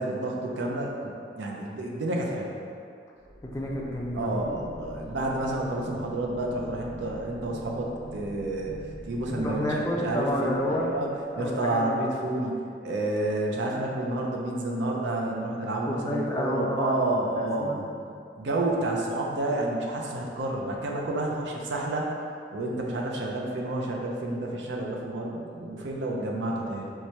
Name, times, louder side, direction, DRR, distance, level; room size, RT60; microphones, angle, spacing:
voice 1, 0.0-2.5 4.1-8.7 9.0-9.6 10.0-11.1 11.4-17.8 18.4-22.1 22.5-26.9, right 2 dB, 80° right, -1 dB, 0.5 m, -30 dB
sound 1, 3.2-11.4, left 1 dB, 80° left, 0.7 m, -44 dB
voice 2, 3.4-4.6 9.4-11.0 11.3-11.9 15.8-17.9, left 1 dB, 15° left, -3 dB, 0.4 m, -30 dB
4.6 x 2.2 x 2.8 m, 2.4 s
head